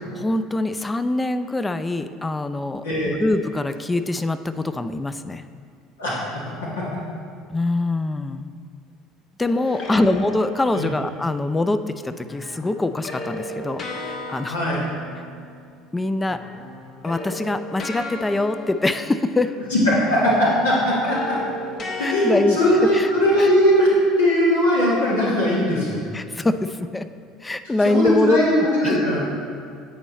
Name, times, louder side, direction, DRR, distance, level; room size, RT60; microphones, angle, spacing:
voice 1, 0.1-2.8 3.2-5.4 7.5-8.5 9.4-14.6 15.9-16.4 17.0-19.6 22.0-23.1 23.4-23.5 26.1-27.1 27.4-28.4 28.8-29.0, left 2 dB, 15° left, 11 dB, 0.3 m, -24 dB
sound 1, 9.4-11.3 12.3-16.0 16.2-19.9 20.3-23.7, left 2 dB, 45° left, 0.9 m, -36 dB
voice 2, 14.5-14.8 19.7-21.4 22.0-26.0 27.8-29.2, equal, 85° left, -6 dB, 1.4 m, -19 dB
8.7 x 4.4 x 4.2 m, 2.2 s
hypercardioid pair, 70°, 0 cm